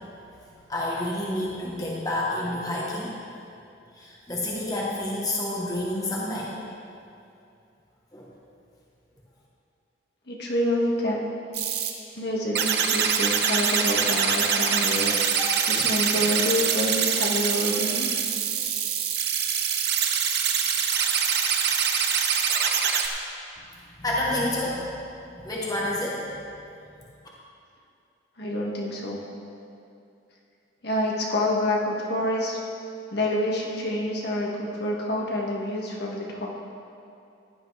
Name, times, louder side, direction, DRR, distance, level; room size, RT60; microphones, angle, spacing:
voice 1, 0.7-3.2 3.9-6.6 8.1-8.3 18.6-18.7 24.0-25.1 25.4-26.5, left 1 dB, 20° left, -4 dB, 1.2 m, -29 dB
voice 2, 10.3-11.3 12.1-15.4 15.8-18.1 28.4-29.2 30.8-32.6 33.1-36.5, left 1 dB, 55° left, -2 dB, 1.7 m, -27 dB
sound 1, 11.5-11.9 12.5-23.1, right 7 dB, 55° right, 0.9 m, -24 dB
15.0 x 10.5 x 3.3 m, 2.6 s
head